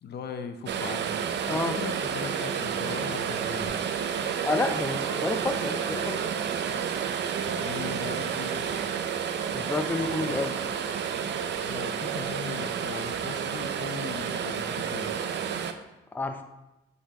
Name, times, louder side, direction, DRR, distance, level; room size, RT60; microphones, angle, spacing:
voice 1, 0.0-1.1 1.5-3.8 7.5-8.7 9.9-10.4 11.6-15.2, left 6 dB, 55° left, 7 dB, 0.7 m, -39 dB
sound 1, 0.7-15.7, right 7 dB, 60° right, 0.5 m, -30 dB
sound 2, 3.6-3.7 4.2-7.0 8.2-12.1 13.1-13.2, equal, 25° left, 2.3 m, -48 dB
voice 2, 4.4-6.2 9.5-10.7 16.1-16.4, left 2 dB, 10° left, 6 dB, 0.4 m, -30 dB
5.9 x 4.1 x 4.1 m, 0.95 s
cardioid pair, 90°, 20 cm